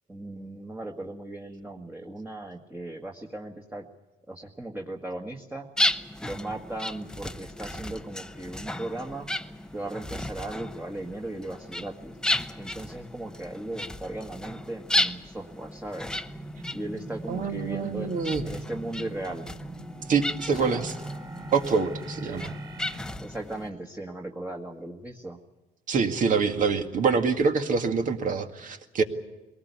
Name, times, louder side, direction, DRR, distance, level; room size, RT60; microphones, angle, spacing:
voice 1, 0.1-3.9 4.3-5.7 6.2-9.3 9.7-12.2 12.6-16.2 16.7-18.1 18.4-19.5 20.5-20.8 23.2-25.4, right 2 dB, 10° right, 1 dB, 1.8 m, -37 dB
sound 1, 5.8-23.7, left 1 dB, 5° left, 0.8 m, -34 dB
sound 2, 16.2-23.0, right 1 dB, 30° right, 5.0 m, -40 dB
voice 2, 17.3-18.5 20.1-20.9 21.5-22.5 25.9-29.0, right 5 dB, 50° right, 6 dB, 2.0 m, -25 dB
22.0 x 18.5 x 8.3 m, 1.1 s
cardioid pair, 110°, 17 cm